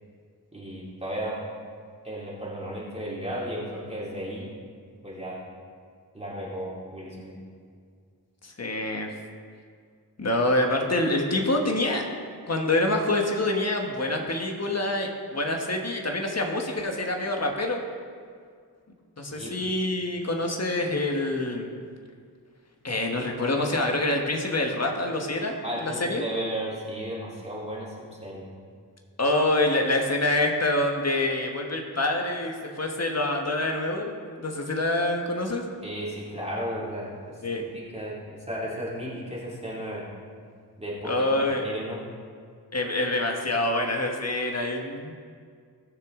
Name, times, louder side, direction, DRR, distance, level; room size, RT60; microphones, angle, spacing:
voice 1, 0.5-1.4 2.0-4.5 5.0-5.4 6.1-7.4 19.3-19.5 25.6-27.9 28.2-28.5 35.8-40.1 40.8-42.0, equal, 15° right, -7 dB, 2.6 m, -34 dB
voice 2, 8.4-9.1 10.2-12.1 12.5-17.8 19.2-21.7 22.8-25.5 25.8-26.2 29.2-35.6 37.4-37.6 41.0-41.7 42.7-45.1, left 2 dB, 40° left, 2 dB, 1.4 m, -26 dB
18.0 x 6.7 x 3.8 m, 2.1 s
wide cardioid pair, 95°, 38 cm